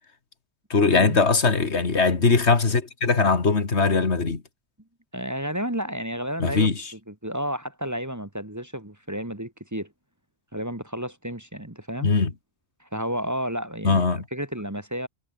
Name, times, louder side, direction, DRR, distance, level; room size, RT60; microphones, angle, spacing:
voice 1, 0.7-4.4 6.4-6.9 12.0-12.3 13.8-14.2, left 4 dB, 85° left, 2.5 m, -21 dB
voice 2, 5.1-6.7 7.1-9.9 10.5-12.1 12.8-15.1, equal, 15° right, 1.7 m, -31 dB
omnidirectional pair, 1.1 m